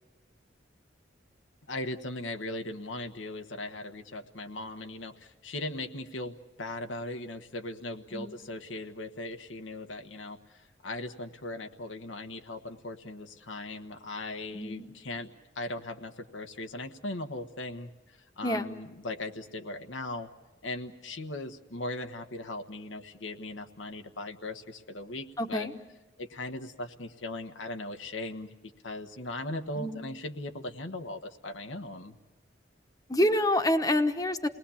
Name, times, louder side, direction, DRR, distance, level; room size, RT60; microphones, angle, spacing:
voice 1, 1.7-20.3 20.6-25.7 26.2-28.5 28.8-32.2, left 2 dB, 85° left, 5 dB, 1.3 m, -39 dB
voice 2, 14.5-14.9 18.4-18.7 25.4-25.7 29.8-30.0 33.1-34.5, left 1 dB, 20° left, 7 dB, 1.1 m, -27 dB
29.0 x 20.0 x 7.2 m, 1.1 s
head